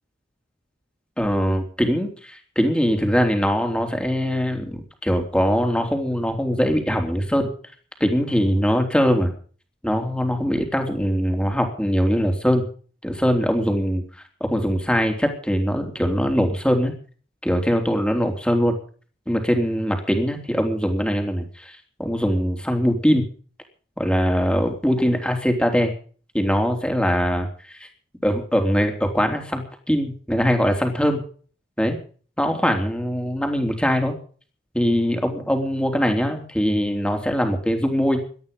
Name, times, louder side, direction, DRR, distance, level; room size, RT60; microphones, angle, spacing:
voice 1, 1.2-7.5 8.0-9.3 9.8-12.7 13.0-14.0 14.4-16.9 17.4-18.8 19.3-23.3 24.0-25.9 26.3-27.9 28.2-31.2 31.8-32.0 32.4-34.2 34.7-38.2, equal, 5° left, 4 dB, 3.4 m, -22 dB
19.0 x 12.5 x 5.4 m, 0.43 s
head